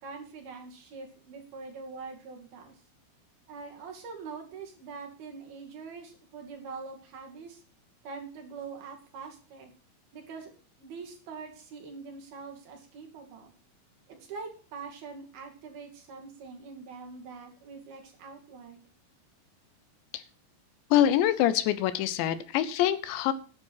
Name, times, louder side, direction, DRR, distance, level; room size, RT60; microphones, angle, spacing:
voice 1, 0.0-2.8 3.5-7.6 8.0-9.7 10.1-10.5 10.8-13.5 14.1-18.8, right 5 dB, 60° right, 1 dB, 3.9 m, -44 dB
voice 2, 20.9-23.3, left 11 dB, 80° left, 14 dB, 3.0 m, -25 dB
10.5 x 9.6 x 5.6 m, 0.38 s
omnidirectional pair, 5.2 m